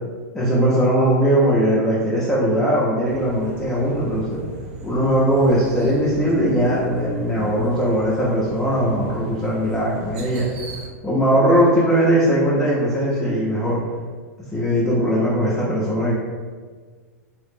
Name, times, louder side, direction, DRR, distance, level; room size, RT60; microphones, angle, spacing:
voice 1, 0.3-4.4 4.8-10.5 11.0-13.8 14.5-16.1, equal, 5° left, -9 dB, 0.6 m, -19 dB
sound 1, 3.0-10.9, right 2 dB, 45° right, 0.4 m, -38 dB
2.4 x 2.1 x 3.4 m, 1.5 s
figure-of-eight pair, 95°, 8 cm